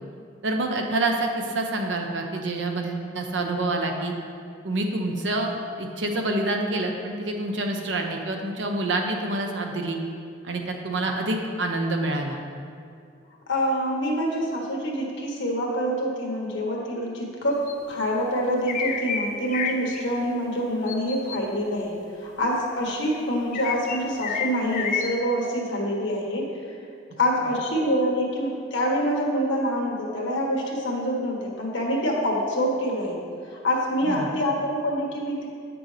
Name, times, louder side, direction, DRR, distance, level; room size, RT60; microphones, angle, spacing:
voice 1, 0.4-4.1 4.6-5.5 5.8-10.0 10.4-12.4 34.1-34.3, right 2 dB, 75° right, 3 dB, 0.8 m, -27 dB
voice 2, 13.5-26.5 27.2-33.2 33.5-35.5, equal, 80° left, -2 dB, 1.4 m, -26 dB
sound 1, 17.7-17.8 18.7-19.2 19.5-20.0 20.9-21.4 23.5-25.1, left 7 dB, 40° left, 0.4 m, -29 dB
8.4 x 6.0 x 3.3 m, 2.4 s
head